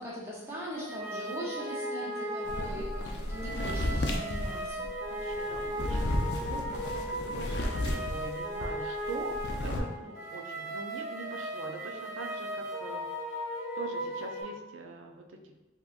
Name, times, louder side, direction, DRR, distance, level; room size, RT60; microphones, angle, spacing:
voice 1, 0.0-4.9, equal, 15° right, -5 dB, 0.6 m, -41 dB
sound 1, 0.7-14.4, equal, 35° right, 1.2 m, -37 dB
voice 2, 2.0-3.5 5.1-13.5 13.8-15.5, right 3 dB, 85° right, 4 dB, 0.4 m, -43 dB
sound 2, 2.5-8.7 9.0-9.8, left 1 dB, 60° left, 0.4 m, -33 dB
3.6 x 2.8 x 2.4 m, 1.1 s
head